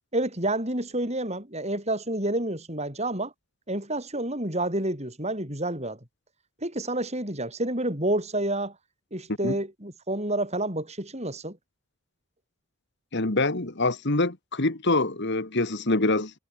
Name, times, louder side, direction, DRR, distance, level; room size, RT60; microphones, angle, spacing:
voice 1, 0.0-3.3 3.7-6.0 6.6-8.7 9.1-11.6, right 1 dB, 30° right, 7.9 m, -29 dB
voice 2, 13.1-16.3, left 2 dB, 50° left, 1.8 m, -25 dB
head